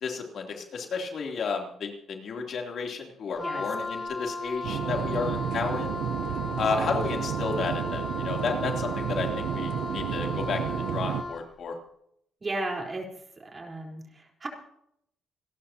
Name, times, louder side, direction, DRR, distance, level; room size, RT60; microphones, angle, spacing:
voice 1, 0.0-5.9 6.6-10.6 10.9-11.8, left 5 dB, 60° left, 1 dB, 3.2 m, -32 dB
Wind instrument woodwind instrument, 3.4-11.5, left 3 dB, 35° left, 1.4 m, -35 dB
sound 1, 4.6-11.2, right 10 dB, 85° right, 0.6 m, -31 dB
voice 2, 5.1-5.4 12.4-13.1 13.4-14.5, right 2 dB, 30° right, 1 dB, 4.2 m, -35 dB
27.0 x 12.5 x 2.9 m, 0.73 s
cardioid pair, 90°, 0 cm